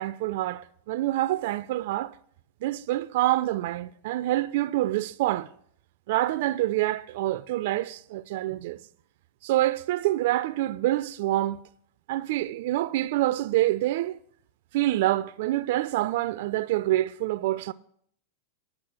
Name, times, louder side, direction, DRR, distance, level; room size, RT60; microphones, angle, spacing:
voice 1, 0.0-2.1 2.6-5.5 6.1-8.8 9.4-11.6 12.1-14.2 14.7-17.7, right 15 dB, 65° right, 0.4 m, -26 dB
10.0 x 6.2 x 7.5 m
hypercardioid pair, 110°, 0 cm